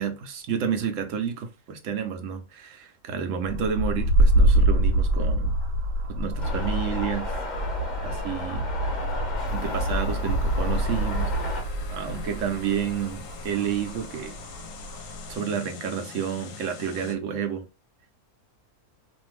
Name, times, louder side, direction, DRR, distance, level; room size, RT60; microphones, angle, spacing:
voice 1, 0.0-5.5 6.1-7.3 8.0-8.7 9.5-11.6 11.9-14.4 15.3-17.6, right 7 dB, 65° right, 0.9 m, -30 dB
sound 1, 3.4-15.4, right 1 dB, 85° right, 1.3 m, -26 dB
sound 2, 6.4-11.6, left 3 dB, 45° left, 0.6 m, -35 dB
sound 3, 9.4-17.2, left 6 dB, 70° left, 0.9 m, -43 dB
2.6 x 2.5 x 3.2 m
omnidirectional pair, 1.6 m